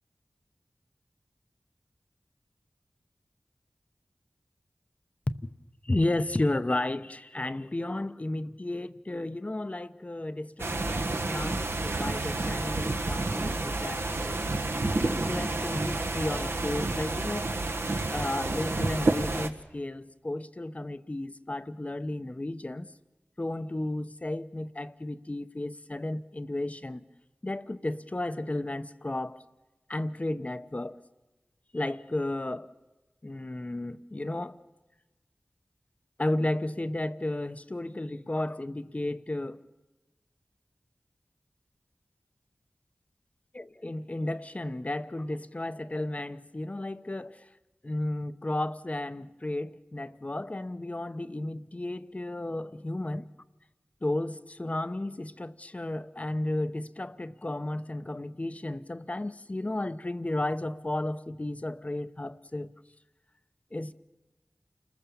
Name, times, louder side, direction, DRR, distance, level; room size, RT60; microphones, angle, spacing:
voice 1, 5.8-14.4 15.0-17.8 18.1-22.9 23.4-27.0 27.4-29.4 29.9-31.0 31.7-32.7 33.2-34.6 36.2-39.6 43.5-47.5 47.8-53.3 54.0-62.7 63.7-63.9, left 1 dB, 35° left, 0.8 m, -33 dB
sound 1, 10.6-19.5, right 2 dB, 70° right, 1.4 m, -30 dB
29.0 x 20.5 x 7.1 m
wide cardioid pair, 55°, 4 cm